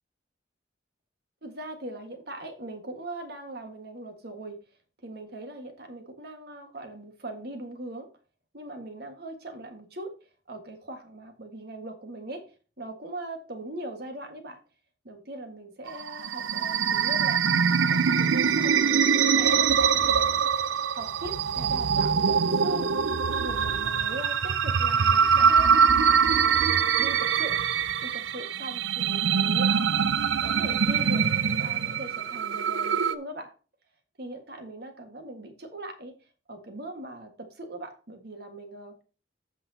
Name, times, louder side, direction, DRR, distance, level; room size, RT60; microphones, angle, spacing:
voice 1, 1.4-4.6 5.0-8.1 8.5-10.2 10.5-12.5 12.8-14.6 15.0-17.4 17.9-20.4 20.9-22.9 23.3-25.8 27.0-27.6 28.0-30.0 30.4-31.3 31.6-33.5 34.2-36.1 36.5-39.2, right 1 dB, 55° right, 5 dB, 1.7 m, -40 dB
sound 1, 15.9-33.1, right 6 dB, 85° right, 0.5 m, -23 dB
14.5 x 6.0 x 2.8 m, 0.35 s
head